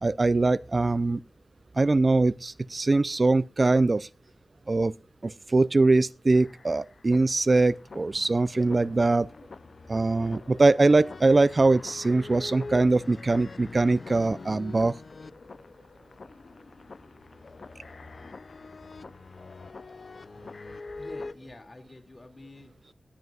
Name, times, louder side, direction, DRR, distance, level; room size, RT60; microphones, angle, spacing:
voice 1, 0.0-1.2 1.8-4.1 4.7-4.9 5.2-9.3 9.9-15.0, right 3 dB, 40° right, 0.5 m, -22 dB
sound 1, 6.3-21.3, left 3 dB, 55° left, 0.5 m, -44 dB
voice 2, 20.9-22.9, left 2 dB, 40° left, 2.3 m, -48 dB
18.5 x 11.0 x 2.3 m
wide cardioid pair, 70°, 0 cm